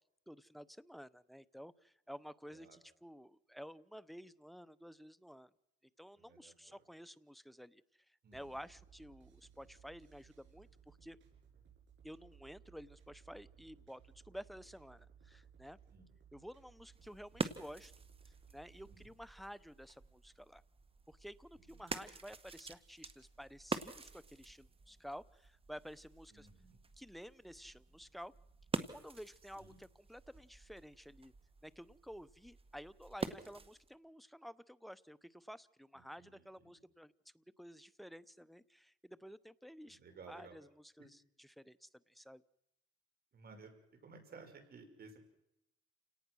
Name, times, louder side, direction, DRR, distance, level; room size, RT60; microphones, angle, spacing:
voice 1, 0.3-5.5 6.0-11.2 12.0-15.8 16.3-17.9 18.5-20.6 21.1-26.5 27.0-28.3 28.9-31.3 31.6-40.0 40.3-42.4, equal, ahead, 15 dB, 0.8 m, -52 dB
voice 2, 6.2-6.8 8.2-8.5 15.9-16.1 18.9-19.0 21.6-22.0 26.3-26.8 29.6-29.8 36.0-36.8 39.9-40.6 43.3-45.3, right 4 dB, 50° right, 6 dB, 5.8 m, -57 dB
sound 1, 8.3-19.0, right 7 dB, 70° right, 7.9 m, -62 dB
sound 2, 16.8-34.0, right 4 dB, 30° right, 1.8 m, -47 dB
29.0 x 18.0 x 6.3 m, 0.85 s
cardioid pair, 90°, 20 cm